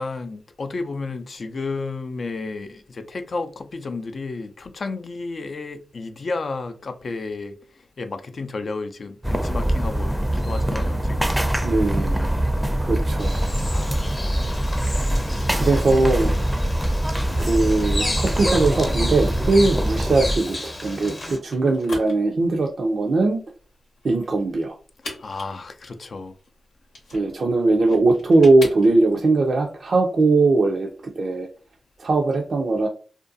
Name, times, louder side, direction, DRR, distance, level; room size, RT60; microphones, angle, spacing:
voice 1, 0.0-11.4 12.3-12.4 13.6-14.2 15.3-16.5 25.1-26.4, left 3 dB, 60° left, 0.4 m, -32 dB
sound 1, 9.2-20.4, right 1 dB, 5° right, 0.5 m, -23 dB
voice 2, 11.6-12.3 12.8-13.4 15.5-16.3 17.4-23.4 24.0-24.8 27.1-31.5 32.0-32.9, right 3 dB, 65° right, 0.4 m, -20 dB
Bird vocalization bird call bird song, 13.2-21.4, left 1 dB, 35° left, 0.8 m, -33 dB
sound 2, 19.4-29.3, left 2 dB, 90° left, 0.8 m, -42 dB
2.5 x 2.2 x 2.5 m
supercardioid pair, 40°, 0 cm